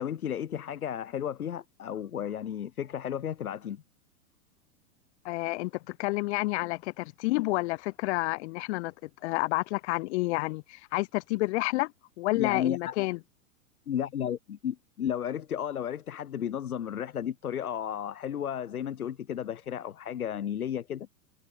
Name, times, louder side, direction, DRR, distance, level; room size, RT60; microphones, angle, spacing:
voice 1, 0.0-3.8 12.4-12.9 13.9-21.1, left 9 dB, 85° left, 1.0 m, -33 dB
voice 2, 5.2-11.9 12.2-13.2, left 21 dB, 50° left, 1.4 m, -29 dB
hypercardioid pair, 105°, 43 cm